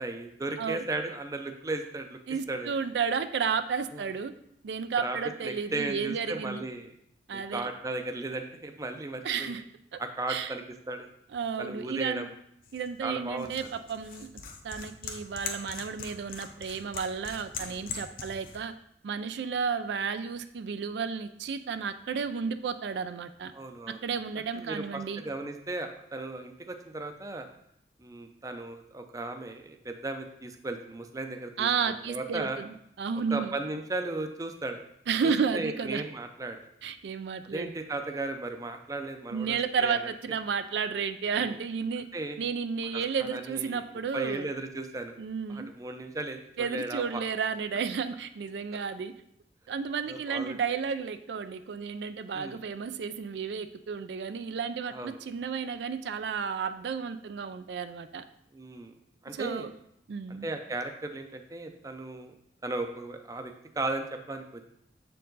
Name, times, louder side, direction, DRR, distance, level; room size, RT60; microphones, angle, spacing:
voice 1, 0.0-2.2 2.5-2.7 3.9-4.1 5.0-5.2 5.4-6.9 7.3-9.5 10.0-11.1 11.6-12.3 13.0-13.5 17.6-17.8 23.5-24.0 24.5-27.5 28.0-32.6 33.3-34.8 35.2-36.6 37.4-40.0 41.4-41.6 42.1-42.4 42.9-43.8 44.1-45.1 45.5-47.2 50.1-50.6 52.3-52.6 54.9-55.2 58.5-58.9 59.2-59.7 60.3-62.3 62.6-64.6, right 2 dB, 20° right, 6 dB, 0.5 m, -36 dB
voice 2, 2.3-4.3 4.6-6.6 7.3-7.7 9.2-9.6 9.9-10.0 10.3-10.6 11.3-12.3 12.7-14.3 14.6-18.7 19.0-23.5 24.0-25.2 31.6-33.5 35.1-36.0 36.8-37.7 39.3-42.1 42.4-44.5 45.2-45.7 46.6-49.1 49.7-58.2 59.3-59.7 60.1-60.5, right 6 dB, 75° right, 10 dB, 0.4 m, -32 dB
sound 1, 12.6-18.6, left 5 dB, 50° left, 0.7 m, -42 dB
7.3 x 4.6 x 3.9 m, 0.73 s
head